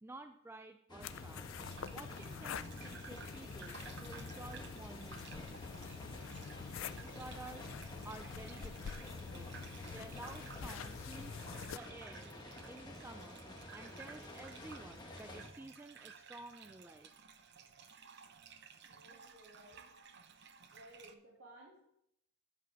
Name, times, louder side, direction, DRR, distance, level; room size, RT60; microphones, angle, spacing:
voice 1, 0.0-1.4 1.9-5.5 7.0-7.7 8.0-9.5 9.9-12.3 12.7-13.4 13.7-17.1, right 2 dB, 10° right, 7 dB, 0.3 m, -52 dB
sound 1, 0.9-15.5, left 1 dB, 20° left, 1.3 m, -50 dB
sound 2, 1.0-11.8, left 7 dB, 75° left, 0.4 m, -47 dB
Gurgling / Bathtub (filling or washing), 1.5-21.1, right 7 dB, 55° right, 0.7 m, -56 dB
voice 2, 18.8-19.8 20.7-21.8, right 1 dB, 85° right, -4 dB, 2.3 m, -58 dB
12.5 x 8.3 x 3.4 m, 0.76 s
head